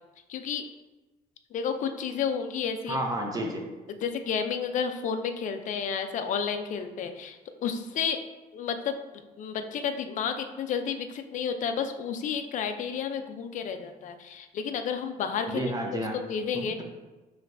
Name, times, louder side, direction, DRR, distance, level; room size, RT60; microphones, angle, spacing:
voice 1, 0.3-0.6 1.5-3.0 3.9-8.2 8.5-15.6 16.1-16.8, left 7 dB, 50° left, 7 dB, 0.4 m, -31 dB
voice 2, 2.9-3.6 15.5-16.2 16.5-16.8, right 1 dB, 20° right, 1 dB, 0.8 m, -31 dB
5.1 x 3.1 x 2.6 m, 1.2 s
cardioid pair, 110°, 17 cm